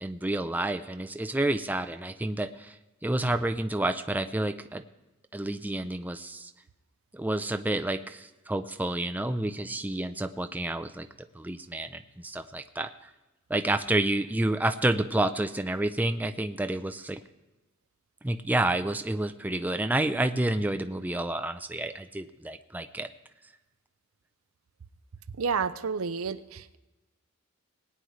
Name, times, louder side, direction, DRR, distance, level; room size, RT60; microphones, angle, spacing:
voice 1, 0.0-2.7 3.0-4.8 5.3-6.5 7.1-11.1 11.3-12.9 13.5-17.2 18.2-23.1, right 1 dB, 10° right, 9 dB, 0.5 m, -29 dB
voice 2, 25.4-26.8, right 5 dB, 85° right, 12 dB, 0.6 m, -30 dB
20.0 x 9.5 x 3.2 m, 1.0 s
head